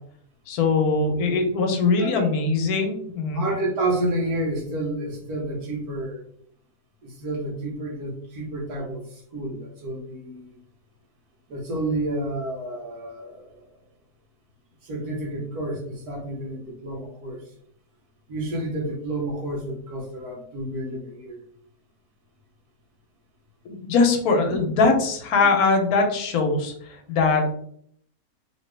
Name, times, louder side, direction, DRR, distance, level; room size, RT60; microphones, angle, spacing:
voice 1, 0.5-3.4 23.6-27.5, left 4 dB, 80° left, 4 dB, 1.2 m, -21 dB
voice 2, 3.3-6.2 7.0-10.6 11.5-13.7 14.8-17.5 18.3-21.4 24.5-24.6 25.4-25.5, right 1 dB, 90° right, 0 dB, 1.5 m, -30 dB
2.9 x 2.9 x 3.2 m, 0.65 s
omnidirectional pair, 1.6 m